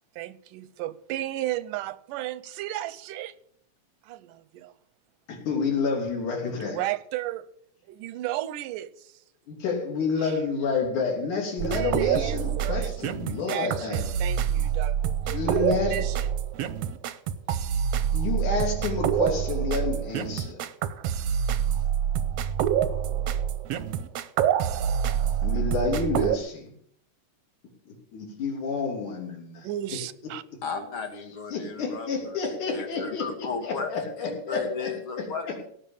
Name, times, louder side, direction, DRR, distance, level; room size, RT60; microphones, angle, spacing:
voice 1, 0.2-3.3 4.0-4.7 6.6-7.5 7.9-9.1 10.2-10.4 11.6-13.2 13.5-16.3 29.6-30.4, right 14 dB, 90° right, 2.3 m, -34 dB
voice 2, 5.3-6.8 9.5-14.0 15.3-16.0 18.1-20.6 25.4-26.7 28.1-29.7 31.5-34.9 35.2-35.6, left 4 dB, 70° left, 4.6 m, -29 dB
sound 1, 11.6-26.4, right 9 dB, 70° right, 1.5 m, -26 dB
voice 3, 30.6-32.4 32.7-35.5, left 5 dB, 45° left, 2.3 m, -35 dB
17.5 x 6.3 x 8.7 m
omnidirectional pair, 3.6 m